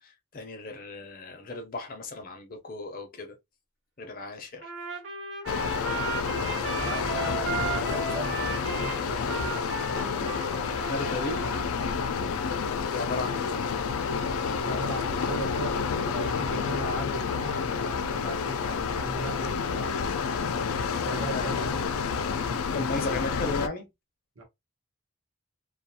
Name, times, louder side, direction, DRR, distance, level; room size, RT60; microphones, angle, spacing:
voice 1, 0.0-3.3 4.0-4.7 10.7-11.6 12.9-13.7 21.3-21.5 22.7-23.9, left 3 dB, 45° left, 0.6 m, -35 dB
Trumpet, 4.6-11.7, right 4 dB, 55° right, 0.9 m, -35 dB
sound 1, 5.5-23.7, left 5 dB, 90° left, 0.4 m, -29 dB
voice 2, 6.5-9.9 12.1-12.5 14.5-20.0 21.0-21.8 24.4-24.5, right 1 dB, 80° right, 1.0 m, -38 dB
sound 2, 9.9-10.5, right 1 dB, 10° right, 0.5 m, -43 dB
2.4 x 2.3 x 2.7 m
head